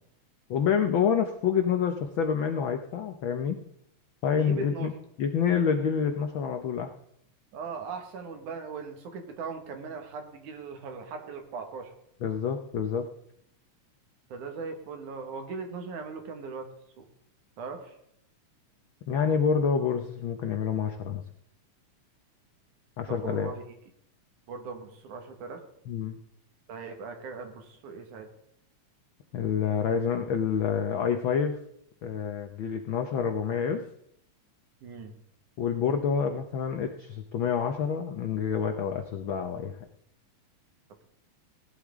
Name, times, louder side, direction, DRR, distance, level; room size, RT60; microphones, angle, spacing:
voice 1, 0.5-3.6 4.2-4.9 5.2-6.9 12.2-13.1 19.1-21.2 23.0-23.5 25.9-26.2 29.3-31.5 32.0-33.8 35.6-39.7, left 7 dB, 85° left, 5 dB, 1.1 m, -27 dB
voice 2, 4.4-4.9 7.5-11.9 14.3-16.7 17.0-17.1 17.6-18.0 23.1-23.6 24.5-25.6 26.7-28.3 34.8-35.2, right 5 dB, 85° right, 4 dB, 3.2 m, -39 dB
17.5 x 11.5 x 3.7 m, 0.73 s
omnidirectional pair, 3.4 m